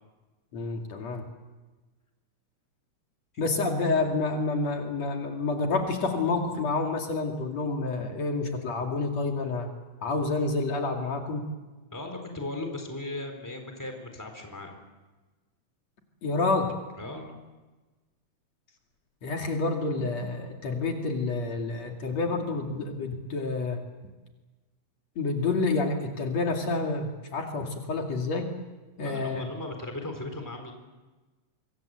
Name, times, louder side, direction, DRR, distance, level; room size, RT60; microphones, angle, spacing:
voice 1, 0.5-1.2 3.4-9.7 10.0-11.5 16.2-16.7 19.2-23.8 25.2-28.5 29.0-29.5, left 3 dB, 65° left, 2 dB, 3.6 m, -28 dB
voice 2, 11.9-14.8 17.0-17.4 29.0-30.7, left 2 dB, 5° left, 4 dB, 3.9 m, -37 dB
25.5 x 23.0 x 7.9 m, 1.2 s
omnidirectional pair, 3.3 m